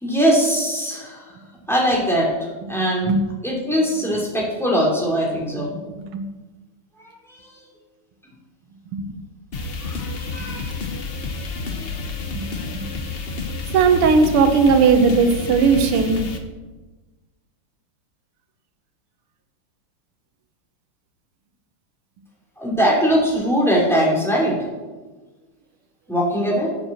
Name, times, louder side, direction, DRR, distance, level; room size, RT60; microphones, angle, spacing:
voice 1, 0.0-1.2 1.7-2.3 2.7-3.1 3.4-5.7 9.8-10.7 22.6-24.6 26.1-26.7, equal, ahead, -3 dB, 2.7 m, -21 dB
voice 2, 2.7-3.2 6.1-6.3 8.9-9.2 10.4-10.5 12.7-12.8 13.7-16.3, right 5 dB, 85° right, 7 dB, 2.0 m, -17 dB
sound 1, 9.5-16.4, left 3 dB, 65° left, 0.5 m, -30 dB
8.1 x 8.1 x 7.2 m, 1.2 s
omnidirectional pair, 2.4 m